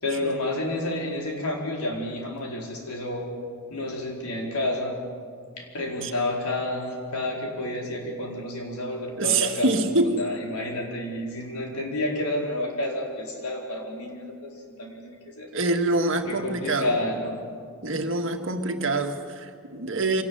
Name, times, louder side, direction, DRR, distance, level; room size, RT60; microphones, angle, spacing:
voice 1, 0.0-3.3 3.7-5.0 5.6-15.5 16.2-17.4, left 1 dB, 85° left, 0 dB, 4.5 m, -30 dB
voice 2, 9.2-10.1 15.5-17.0 17.8-20.2, right 2 dB, 60° right, 5 dB, 1.8 m, -25 dB
25.0 x 18.5 x 7.9 m, 2.1 s
head